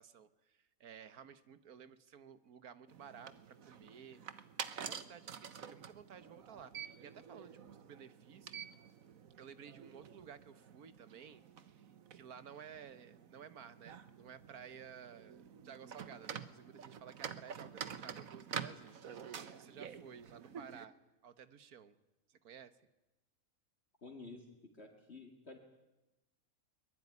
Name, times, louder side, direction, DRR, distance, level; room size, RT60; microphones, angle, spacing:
voice 1, 0.0-4.4 4.7-8.6 9.4-21.0 21.2-22.0 22.3-22.9, right 7 dB, 85° right, 13 dB, 1.7 m, -55 dB
sound 1, 2.9-20.9, right 7 dB, 70° right, 1.6 m, -48 dB
voice 2, 24.0-25.6, left 3 dB, 45° left, 3 dB, 2.6 m, -52 dB
23.0 x 22.0 x 9.6 m, 1.0 s
omnidirectional pair, 1.5 m